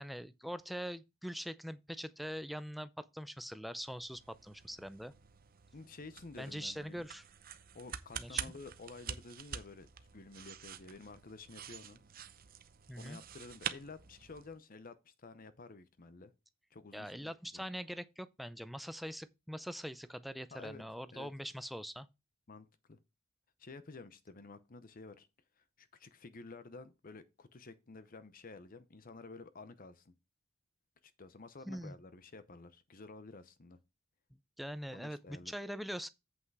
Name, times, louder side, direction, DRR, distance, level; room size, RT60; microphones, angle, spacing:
voice 1, 0.0-5.1 6.4-7.2 8.2-8.5 12.9-13.2 16.9-22.1 31.7-32.0 34.3-36.1, equal, ahead, 0.4 m, -43 dB
sound 1, 3.8-14.6, right 8 dB, 45° right, 0.7 m, -47 dB
voice 2, 5.7-7.0 7.7-12.0 13.0-16.3 16.7-17.6 20.5-20.8 21.1-21.3 22.5-23.0 23.6-25.3 25.6-30.1 31.0-33.8 34.9-35.5, left 3 dB, 40° left, 0.7 m, -51 dB
8.1 x 5.7 x 4.7 m
head